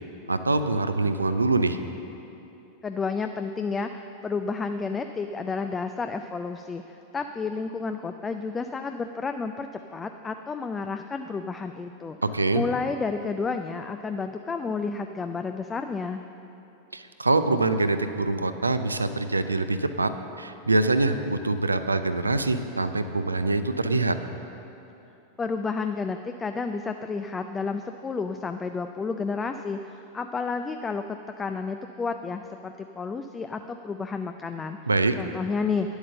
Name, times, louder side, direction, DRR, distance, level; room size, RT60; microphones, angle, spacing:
voice 1, 0.3-1.8 12.2-12.6 16.9-20.1 20.4-24.2 34.9-35.2, right 2 dB, 80° right, 10 dB, 0.5 m, -24 dB
voice 2, 2.8-12.2 12.5-16.2 25.4-34.8 35.2-36.0, left 4 dB, 15° left, 7 dB, 0.4 m, -31 dB
9.9 x 8.0 x 6.6 m, 2.9 s
figure-of-eight pair, 90°, 0 cm